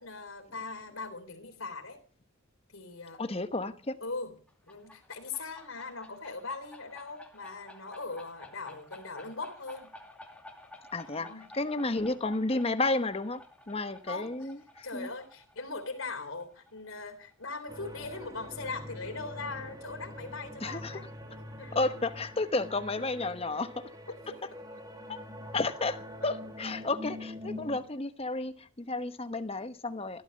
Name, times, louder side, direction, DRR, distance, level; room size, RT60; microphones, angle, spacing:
voice 1, 0.0-2.0 2.7-3.2 4.0-4.4 4.7-9.9 11.2-11.5 14.1-14.5 14.8-21.0 21.6-21.8 24.2-24.4, left 3 dB, 70° left, 3.7 m, -40 dB
voice 2, 3.2-4.0 10.9-15.1 20.6-21.0 21.7-23.9 25.1-25.2 25.5-30.2, left 2 dB, 30° left, 1.0 m, -32 dB
sound 1, 4.5-17.9, left 1 dB, 5° left, 2.2 m, -53 dB
sound 2, 17.7-27.8, left 1 dB, 20° right, 2.3 m, -44 dB
15.5 x 13.0 x 6.5 m
head